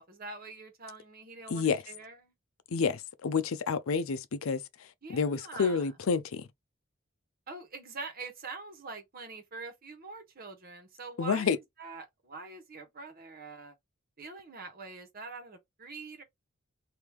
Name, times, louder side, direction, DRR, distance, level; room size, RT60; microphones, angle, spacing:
voice 1, 0.0-2.3 5.0-5.9 7.5-13.7 14.2-16.2, right 3 dB, 45° right, 1.3 m, -44 dB
voice 2, 1.5-1.8 2.7-6.5 11.2-11.6, left 5 dB, 85° left, 0.5 m, -29 dB
3.1 x 2.7 x 3.4 m
head